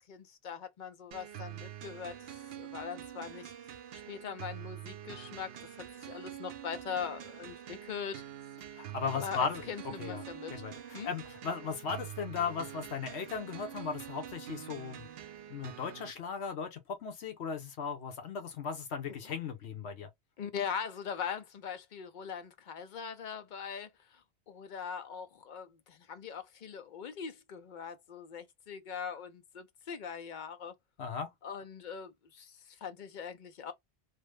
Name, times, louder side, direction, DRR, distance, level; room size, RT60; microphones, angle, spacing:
voice 1, 0.1-2.2 2.6-3.5 3.9-5.5 5.8-8.2 9.1-10.5 10.9-11.1 19.3-19.4 20.4-30.7 31.4-33.7, left 7 dB, 55° left, 0.7 m, -41 dB
sound 1, 1.1-16.1, right 11 dB, 70° right, 0.8 m, -46 dB
voice 2, 8.6-9.6 10.0-10.2 10.5-15.1 15.5-20.1 31.0-31.3, left 6 dB, 80° left, 1.0 m, -37 dB
3.2 x 2.1 x 3.1 m
omnidirectional pair, 1.1 m